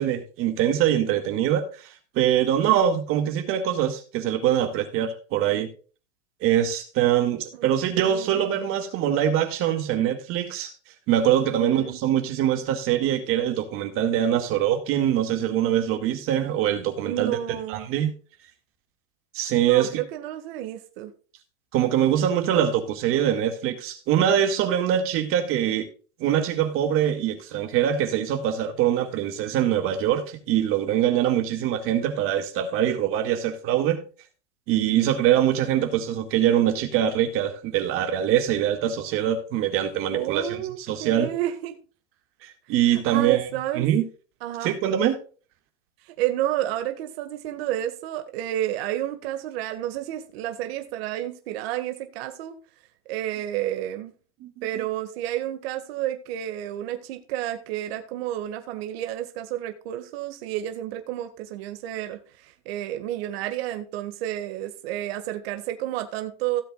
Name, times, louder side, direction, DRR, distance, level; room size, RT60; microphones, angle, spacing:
voice 1, 0.0-1.9 2.2-5.7 6.4-10.7 11.1-17.4 17.7-18.1 19.3-19.9 21.7-25.9 26.2-34.0 34.7-40.6 40.9-41.3 42.7-43.4 43.8-44.1 44.6-45.2 54.4-54.5, right 10 dB, 40° right, 2.1 m, -23 dB
voice 2, 7.5-8.4 11.5-12.0 17.0-17.9 19.6-21.1 40.1-41.8 42.9-43.9 44.4-44.7 46.1-52.6 53.1-54.1 54.6-66.6, right 13 dB, 60° right, 1.9 m, -30 dB
17.0 x 8.0 x 2.4 m
supercardioid pair, 145°, 34 cm